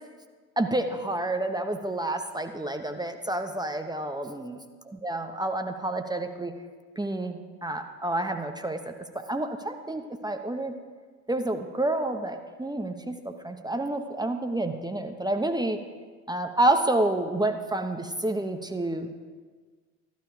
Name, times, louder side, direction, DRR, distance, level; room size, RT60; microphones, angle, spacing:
voice 1, 0.6-4.6 5.0-6.5 7.0-8.9 9.3-10.7 11.3-13.2 13.4-15.8 16.3-19.1, right 1 dB, 10° right, 6 dB, 1.1 m, -29 dB
15.5 x 11.5 x 5.0 m, 1.5 s
hypercardioid pair, 60°, 39 cm